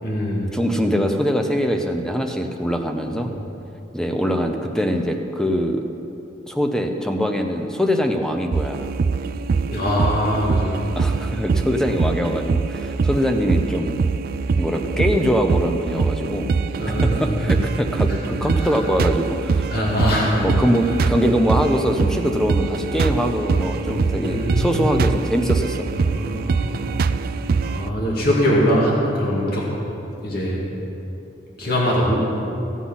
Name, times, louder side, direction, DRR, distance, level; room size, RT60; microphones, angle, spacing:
voice 1, 0.0-0.5 3.1-3.3 9.7-10.8 16.8-17.5 18.4-18.7 19.7-20.4 23.6-23.8 24.2-24.9 26.0-26.9 27.6-29.7 30.2-30.6 31.6-32.1, equal, 60° left, -5 dB, 2.3 m, -22 dB
voice 2, 0.5-3.3 3.9-5.8 6.5-8.9 10.9-13.9 14.6-16.5 17.0-19.7 20.4-25.8, equal, 5° left, 4 dB, 0.8 m, -22 dB
sound 1, 8.5-27.9, right 4 dB, 55° right, 0.3 m, -23 dB
16.0 x 8.2 x 5.7 m, 2.9 s
head